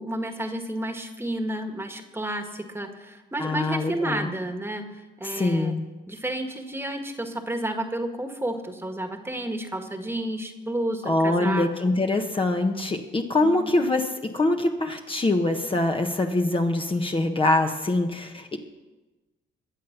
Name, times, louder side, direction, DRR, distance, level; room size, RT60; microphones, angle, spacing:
voice 1, 0.0-5.8 6.1-11.7 13.4-13.8, right 1 dB, 10° right, 5 dB, 1.7 m, -31 dB
voice 2, 3.4-4.3 5.2-5.8 11.1-18.6, left 2 dB, 25° left, 3 dB, 1.3 m, -24 dB
22.0 x 7.5 x 5.9 m, 1.1 s
cardioid pair, 90°, 20 cm